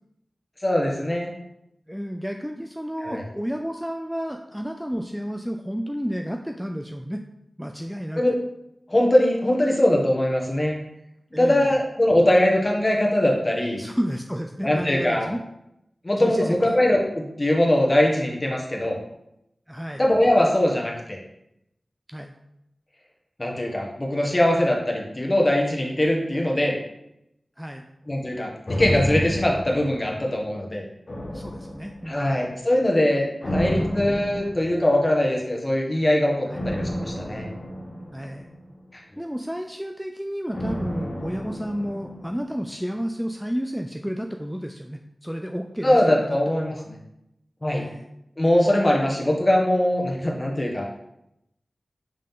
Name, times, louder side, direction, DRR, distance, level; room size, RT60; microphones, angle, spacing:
voice 1, 0.6-1.3 3.0-3.2 8.1-8.3 8.9-10.8 11.4-13.8 14.6-15.3 16.0-19.0 20.0-21.2 23.4-26.8 28.1-30.8 32.0-33.2 33.5-37.5 38.9-39.0 45.8-47.0 47.6-47.8 48.4-50.9, left 1 dB, 30° left, -1 dB, 1.5 m, -21 dB
voice 2, 1.9-7.2 7.6-8.2 11.3-11.8 13.7-15.4 16.2-16.7 19.7-20.0 22.1-22.3 27.6-27.8 31.2-32.4 33.5-33.6 36.5-36.7 38.1-38.5 39.2-46.4 46.7-46.8 47.7-48.1, equal, 5° right, 4 dB, 0.4 m, -31 dB
sound 1, 28.7-30.6 31.1-32.3 33.4-35.1 36.5-38.9 40.5-42.7 43.0-43.1, equal, 50° left, 1.2 m, -30 dB
7.5 x 3.8 x 3.7 m, 0.82 s
wide cardioid pair, 55°, 0 cm